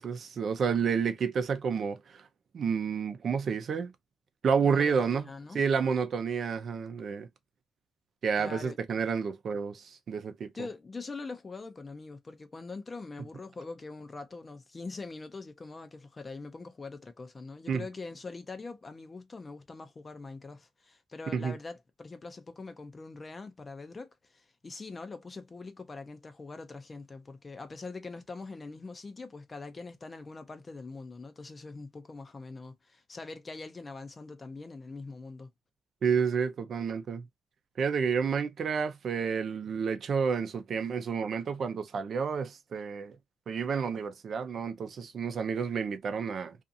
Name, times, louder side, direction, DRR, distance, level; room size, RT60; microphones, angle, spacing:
voice 1, 0.0-2.2 2.5-3.9 4.4-5.2 5.5-7.3 8.2-10.5 17.7-17.9 21.3-21.6 36.0-37.2 37.8-43.2 43.5-46.6, right 6 dB, 55° right, 0.6 m, -30 dB
voice 2, 4.6-5.6 8.4-8.8 10.5-35.5, left 3 dB, 30° left, 0.6 m, -43 dB
2.5 x 2.5 x 2.6 m
cardioid pair, 90°, 0 cm